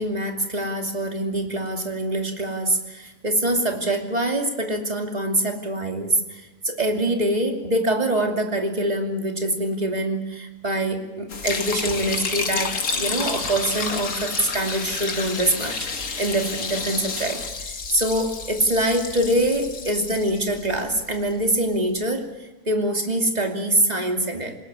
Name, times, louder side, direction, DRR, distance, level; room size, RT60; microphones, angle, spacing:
voice 1, 0.0-24.6, right 1 dB, 25° right, 3 dB, 2.8 m, -24 dB
Liquid, 11.3-21.5, left 4 dB, 75° left, 2.5 m, -31 dB
sound 1, 11.3-17.5, left 4 dB, 50° left, 2.4 m, -37 dB
21.5 x 20.0 x 8.5 m, 1.1 s
omnidirectional pair, 1.7 m